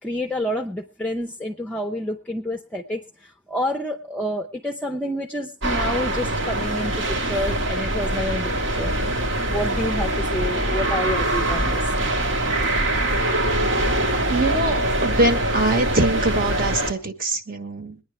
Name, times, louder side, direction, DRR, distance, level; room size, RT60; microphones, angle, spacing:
voice 1, 0.0-8.9 9.5-11.9, left 1 dB, 5° left, 1 dB, 0.6 m, -29 dB
sound 1, 5.6-16.9, right 1 dB, 65° right, 1.4 m, -23 dB
voice 2, 14.3-18.0, right 2 dB, 45° right, 8 dB, 1.2 m, -23 dB
23.0 x 9.8 x 3.3 m, 0.36 s
head